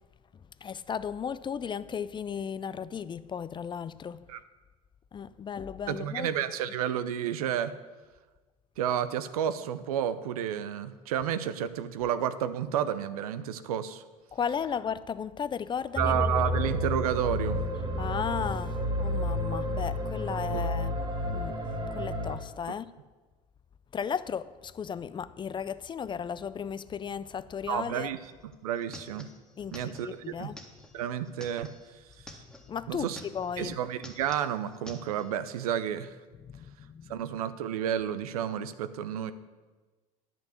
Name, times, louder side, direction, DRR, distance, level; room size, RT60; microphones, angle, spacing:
voice 1, 0.6-4.2 5.1-6.3 14.3-16.3 18.0-21.0 21.3-21.6 21.9-22.9 23.9-28.1 29.6-30.6 32.7-33.8 36.4-37.1, left 7 dB, 25° left, 0.4 m, -35 dB
voice 2, 5.9-7.7 8.8-14.0 16.0-17.6 20.5-20.7 27.7-29.3 29.7-30.5 30.9-31.7 32.2-32.4 32.9-33.2 33.6-36.1 37.1-39.3, right 9 dB, 80° right, 0.6 m, -31 dB
sound 1, 15.9-22.4, left 1 dB, 25° right, 2.3 m, -30 dB
sound 2, 28.2-28.3 28.5-32.7 33.0-33.6 33.9-35.3, left 1 dB, 5° left, 1.8 m, -49 dB
10.5 x 6.1 x 7.7 m
hypercardioid pair, 75°, 19 cm